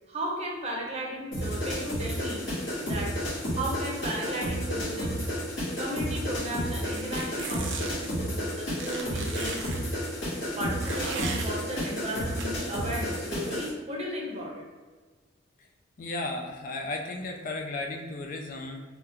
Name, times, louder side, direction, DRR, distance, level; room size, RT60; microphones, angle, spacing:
voice 1, 0.1-2.4 2.8-3.2 3.5-5.2 5.8-9.7 10.6-14.7, right 1 dB, 35° right, -2 dB, 0.7 m, -35 dB
sound 1, 1.3-13.7, equal, 65° left, 1.5 m, -31 dB
sound 2, 6.9-8.1 8.8-9.8 10.8-11.5 12.4-12.5, right 4 dB, 65° right, 0.4 m, -37 dB
voice 2, 16.0-18.8, left 2 dB, 45° left, 3 dB, 0.3 m, -34 dB
3.4 x 2.3 x 2.8 m, 1.4 s
head